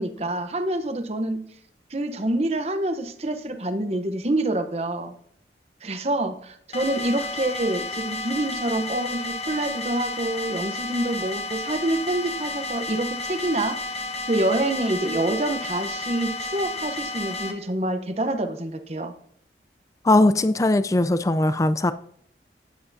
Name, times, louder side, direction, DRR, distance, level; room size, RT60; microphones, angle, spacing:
voice 1, 0.0-1.4 1.9-5.1 5.8-19.1, right 1 dB, 35° right, 0.8 m, -27 dB
sound 1, 6.7-17.5, left 2 dB, 35° left, 1.0 m, -32 dB
voice 2, 20.0-21.9, left 2 dB, 20° left, 0.3 m, -19 dB
13.5 x 9.4 x 2.7 m
head